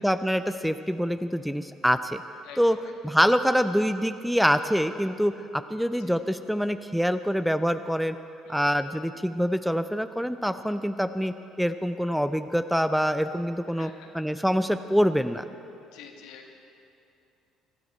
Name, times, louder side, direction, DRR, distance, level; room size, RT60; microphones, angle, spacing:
voice 1, 0.0-2.2 2.6-2.8 3.0-8.2 8.5-15.4, equal, ahead, 10 dB, 0.6 m, -25 dB
voice 2, 2.4-2.9 6.0-6.1 8.4-8.7 13.7-14.1 15.8-16.5, left 7 dB, 65° left, 2 dB, 1.8 m, -48 dB
22.5 x 13.0 x 4.4 m, 2.7 s
figure-of-eight pair, 55°, 0 cm